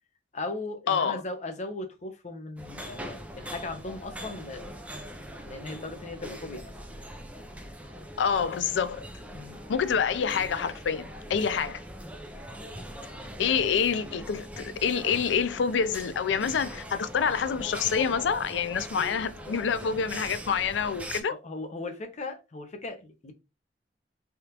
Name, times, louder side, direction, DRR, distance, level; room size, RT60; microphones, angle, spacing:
voice 1, 0.3-4.7 5.4-6.7 9.3-9.6 11.5-11.7 13.4-13.6 19.0-19.1 21.3-23.3, left 2 dB, 40° left, 0.6 m, -38 dB
voice 2, 0.9-1.2 8.2-9.0 9.7-11.8 13.4-21.4, left 6 dB, 90° left, 0.4 m, -27 dB
sound 1, 2.6-21.2, equal, 10° right, 0.4 m, -41 dB
3.5 x 2.4 x 2.8 m
head